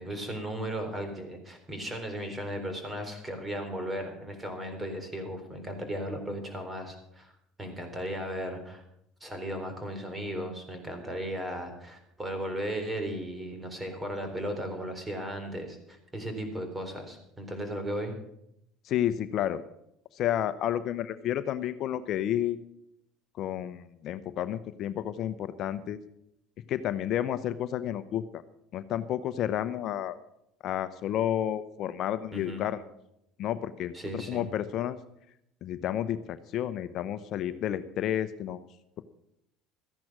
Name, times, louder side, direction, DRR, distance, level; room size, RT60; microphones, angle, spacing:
voice 1, 0.0-7.3 7.6-8.8 9.2-18.1 32.3-32.6 33.9-34.5, equal, 15° right, 6 dB, 4.1 m, -36 dB
voice 2, 18.8-19.6 20.1-22.6 23.4-26.0 26.7-28.4 28.7-30.1 30.6-32.8 33.4-35.0 35.6-38.6 39.0-39.1, left 11 dB, 55° left, 12 dB, 0.8 m, -31 dB
14.0 x 10.5 x 6.1 m, 0.78 s
hypercardioid pair, 80°, 0 cm